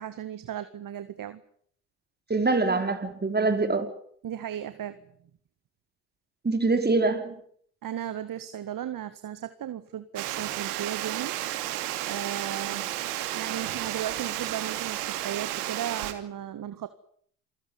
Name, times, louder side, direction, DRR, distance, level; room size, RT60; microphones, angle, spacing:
voice 1, 0.0-1.4 4.2-5.0 7.8-11.4 12.1-12.9 13.3-16.9, right 10 dB, 45° right, 12 dB, 1.8 m, -35 dB
voice 2, 2.3-3.9 6.4-7.4, right 3 dB, 20° right, 7 dB, 4.9 m, -24 dB
Water, 10.2-16.1, right 14 dB, 75° right, 2.8 m, -32 dB
27.5 x 16.0 x 9.8 m, 0.63 s
hypercardioid pair, 60°, 45 cm